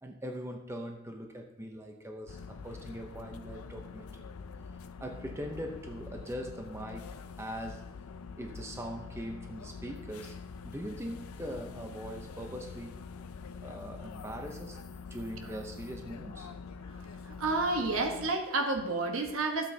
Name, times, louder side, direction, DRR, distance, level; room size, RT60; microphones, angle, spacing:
voice 1, 0.0-4.3 5.0-7.1 7.4-7.8 8.4-10.4 10.6-13.0 13.6-14.8 15.1-16.5, equal, 10° right, 3 dB, 0.6 m, -41 dB
sound 1, 2.3-18.3, left 5 dB, 80° left, 0.5 m, -45 dB
voice 2, 17.3-19.7, right 3 dB, 70° right, 4 dB, 1.1 m, -30 dB
12.5 x 7.7 x 2.8 m, 0.95 s
head